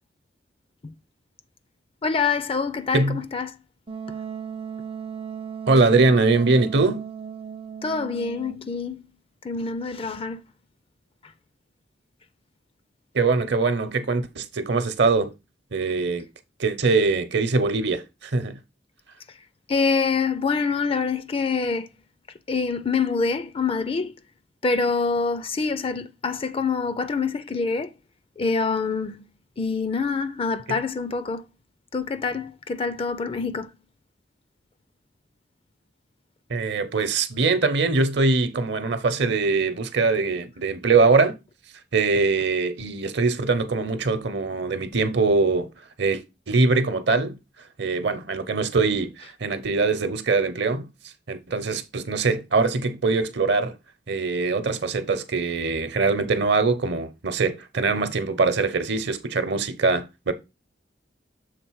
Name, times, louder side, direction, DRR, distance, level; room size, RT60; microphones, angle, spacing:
voice 1, 2.0-3.6 7.8-9.1 9.4-10.4 11.2-11.3 19.3-19.4 19.7-21.9 22.5-24.1 24.6-27.9 28.4-29.3 29.6-31.5 31.9-33.7, left 4 dB, 30° left, 0.4 m, -26 dB
Wind instrument woodwind instrument, 3.9-8.7, right 7 dB, 30° right, 0.5 m, -36 dB
voice 2, 5.7-7.0 13.1-15.3 15.7-16.2 16.6-18.6 36.5-41.3 41.9-45.7 46.0-46.2 46.5-47.4 47.8-50.9 51.3-53.8 54.1-60.3, right 3 dB, 65° right, 0.8 m, -22 dB
6.6 x 3.6 x 4.6 m
head